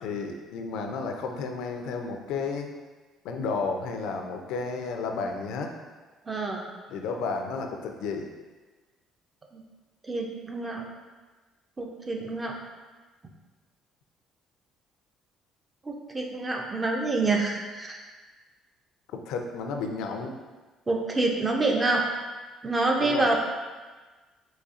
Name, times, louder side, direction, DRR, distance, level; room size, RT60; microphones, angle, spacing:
voice 1, 0.0-2.7 3.2-5.7 6.9-8.3 19.1-20.4 23.0-23.4, left 4 dB, 80° left, 4 dB, 0.4 m, -32 dB
voice 2, 6.3-6.6 9.5-9.6 10.1-10.9 11.8-12.6 15.9-18.0 20.9-22.1 22.6-23.4, right 2 dB, 15° right, 1 dB, 0.4 m, -27 dB
4.0 x 3.0 x 2.4 m, 1.3 s
cardioid pair, 160°, 0 cm